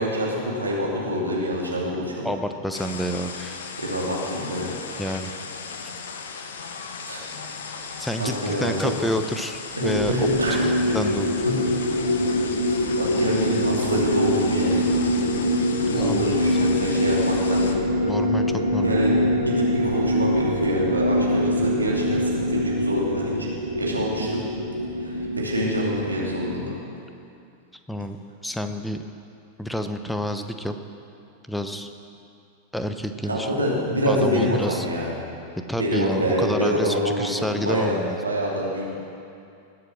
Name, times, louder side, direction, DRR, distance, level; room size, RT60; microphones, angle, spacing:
voice 1, 0.0-2.3 3.8-4.7 7.1-7.2 7.6-8.9 9.8-10.7 11.4-11.6 12.7-14.9 15.9-17.7 18.8-23.5 23.8-24.4 25.0-26.7 33.3-35.1 35.8-38.0 38.2-39.0, equal, 80° right, -4 dB, 2.8 m, -26 dB
voice 2, 2.2-3.6 5.0-5.3 8.0-10.3 10.6-11.4 15.9-16.7 18.0-19.0 27.9-28.2 28.4-29.0 29.6-30.7 31.5-31.9 32.7-33.6 34.1-34.9 35.7-38.2, equal, 5° left, 7 dB, 0.8 m, -29 dB
sound 1, 2.7-17.8, left 5 dB, 65° left, 1.0 m, -37 dB
sound 2, 9.8-26.5, equal, 85° left, 1.9 m, -24 dB
20.5 x 7.7 x 6.1 m, 2.6 s
figure-of-eight pair, 90°, 0 cm